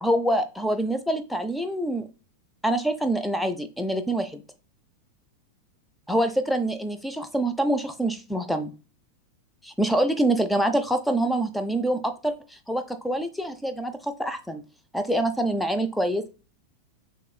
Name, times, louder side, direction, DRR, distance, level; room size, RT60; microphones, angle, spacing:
voice 1, 0.0-2.1 2.6-4.4 6.1-8.7 9.6-14.6 14.9-16.3, right 1 dB, ahead, 9 dB, 0.4 m, -25 dB
6.0 x 2.8 x 2.2 m, 0.33 s
figure-of-eight pair, 90°, 0 cm